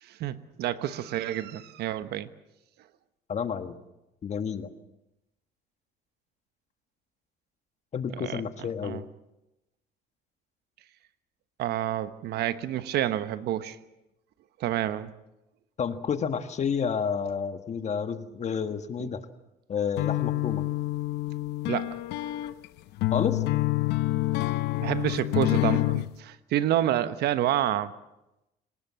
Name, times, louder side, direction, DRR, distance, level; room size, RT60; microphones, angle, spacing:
voice 1, 0.0-2.3 8.1-8.4 8.8-9.0 11.6-13.8 14.6-15.1 19.0-19.1 21.7-22.0 24.8-27.9, right 12 dB, 75° right, 13 dB, 1.2 m, -29 dB
voice 2, 3.3-3.8 4.2-4.7 7.9-9.0 15.8-19.2 19.7-20.6 23.1-23.4, left 7 dB, 40° left, 9 dB, 1.6 m, -30 dB
sound 1, 20.0-26.1, left 17 dB, 85° left, 0.9 m, -27 dB
27.0 x 18.5 x 7.5 m, 0.92 s
cardioid pair, 110°, 17 cm